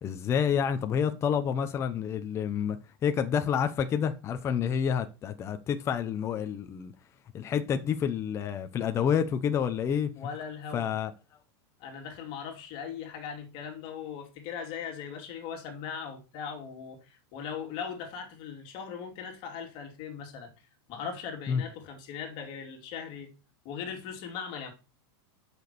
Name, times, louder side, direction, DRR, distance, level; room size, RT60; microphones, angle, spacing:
voice 1, 0.0-2.8 3.0-6.9 7.3-10.1 10.7-11.1 21.5-21.6, left 7 dB, 20° left, 0.8 m, -28 dB
voice 2, 10.2-10.9 11.8-20.5 20.9-23.3 23.6-24.7, left 7 dB, 40° left, 2.7 m, -39 dB
8.0 x 6.2 x 6.8 m
supercardioid pair, 155°, 13 cm